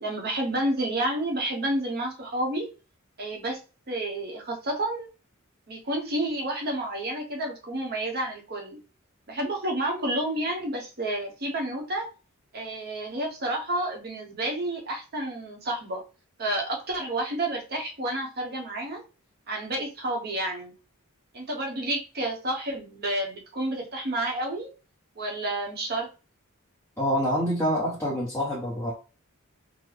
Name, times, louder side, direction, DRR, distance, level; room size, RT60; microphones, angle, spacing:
voice 1, 0.0-2.7 3.2-3.6 3.9-5.1 5.7-8.8 9.3-12.1 12.5-16.0 16.4-19.0 19.5-20.7 21.3-24.7 25.2-26.1, right 1 dB, 50° right, 0.9 m, -30 dB
voice 2, 27.0-28.9, equal, 10° left, 0.8 m, -26 dB
3.9 x 2.1 x 3.2 m
head